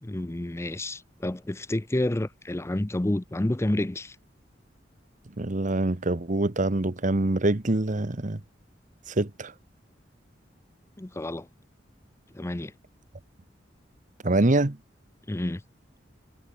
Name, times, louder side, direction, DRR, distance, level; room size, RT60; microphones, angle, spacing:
voice 1, 0.0-4.2 11.0-11.5 12.3-12.7 15.3-15.6, left 1 dB, 15° left, 0.5 m, -29 dB
voice 2, 5.4-8.4 9.1-9.5 14.2-14.8, right 2 dB, 45° right, 1.2 m, -25 dB
head